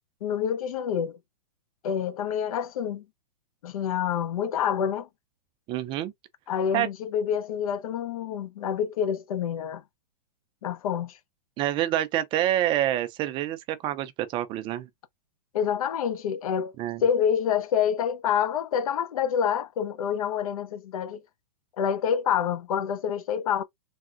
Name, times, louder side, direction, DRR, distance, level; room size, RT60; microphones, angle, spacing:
voice 1, 0.2-1.2 1.8-3.0 3.6-5.1 6.5-9.8 10.6-11.2 15.5-16.7 17.0-21.2 21.8-23.6, left 8 dB, 70° left, 0.7 m, -27 dB
voice 2, 5.7-6.1 6.7-6.9 11.6-14.9 16.8-17.0, right 13 dB, 25° right, 0.4 m, -27 dB
3.4 x 2.1 x 2.4 m
hypercardioid pair, 125°, 19 cm